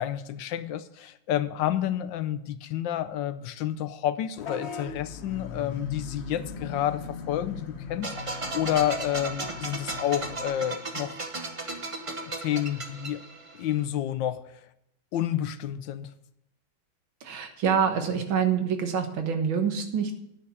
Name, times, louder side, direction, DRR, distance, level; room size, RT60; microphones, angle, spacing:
voice 1, 0.0-11.2 12.3-13.3 13.5-14.5 15.1-16.1, left 11 dB, 75° left, 12 dB, 1.3 m, -30 dB
Vehicle horn car horn honking / Bus, 4.4-10.5, left 6 dB, 45° left, 1.0 m, -39 dB
sound 1, 8.0-13.8, right 3 dB, 30° right, 0.6 m, -36 dB
voice 2, 17.2-20.1, right 7 dB, 90° right, 6 dB, 2.1 m, -26 dB
9.9 x 6.7 x 7.1 m, 0.79 s
omnidirectional pair, 2.1 m